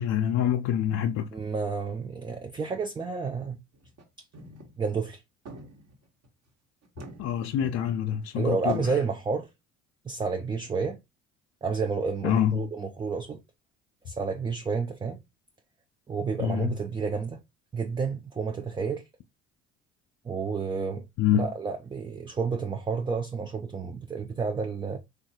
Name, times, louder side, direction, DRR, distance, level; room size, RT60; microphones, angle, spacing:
voice 1, 0.0-1.3 7.2-8.9 12.2-12.7 16.4-16.8 21.2-21.5, left 10 dB, 50° left, 0.4 m, -26 dB
voice 2, 1.3-3.6 4.8-5.2 8.4-9.5 10.0-11.0 11.6-13.4 14.1-15.2 16.1-17.4 17.7-19.0 20.2-21.0 21.3-25.0, right 5 dB, 15° right, 0.4 m, -30 dB
sound 1, 3.7-4.0 4.3-4.8 5.1-5.2 5.4-6.3 6.8-8.3 8.7-9.1, right 2 dB, 50° right, 1.2 m, -44 dB
3.4 x 2.4 x 2.7 m
hypercardioid pair, 60°, 33 cm